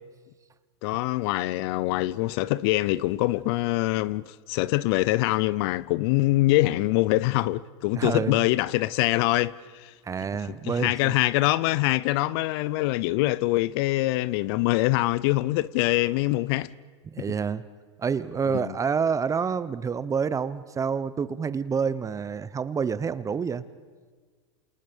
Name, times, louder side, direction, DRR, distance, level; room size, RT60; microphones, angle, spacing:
voice 1, 0.8-9.9 10.5-16.7 17.2-17.3 18.5-18.8, left 18 dB, 60° left, 0.8 m, -24 dB
voice 2, 7.9-8.4 10.0-11.1 17.1-17.6 18.0-23.6, right 6 dB, 20° right, 1.0 m, -28 dB
29.0 x 28.0 x 5.3 m
hypercardioid pair, 100°, 15 cm